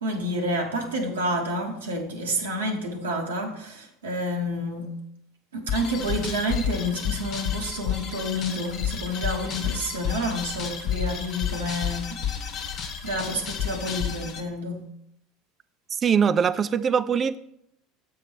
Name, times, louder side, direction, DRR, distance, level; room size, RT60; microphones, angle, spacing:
voice 1, 0.0-5.0 5.5-12.2 13.0-14.9, equal, 80° right, 1.1 m, -29 dB
sound 1, 5.7-14.4, left 8 dB, 50° left, 1.1 m, -31 dB
voice 2, 15.9-17.4, right 7 dB, 35° right, 0.4 m, -22 dB
7.4 x 3.8 x 6.1 m
figure-of-eight pair, 70°, 0 cm